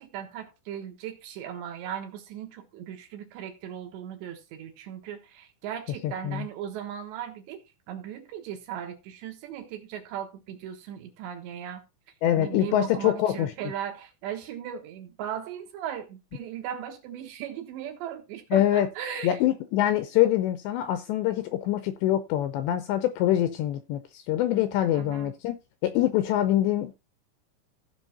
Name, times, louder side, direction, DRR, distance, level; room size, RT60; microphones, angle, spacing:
voice 1, 0.0-7.6 7.9-11.8 12.4-19.4 24.5-25.3, right 9 dB, 70° right, 3.1 m, -37 dB
voice 2, 6.0-6.5 12.2-13.5 18.5-18.9 19.2-25.6 25.8-26.9, left 12 dB, 85° left, 2.6 m, -24 dB
15.5 x 5.5 x 4.2 m
omnidirectional pair, 5.8 m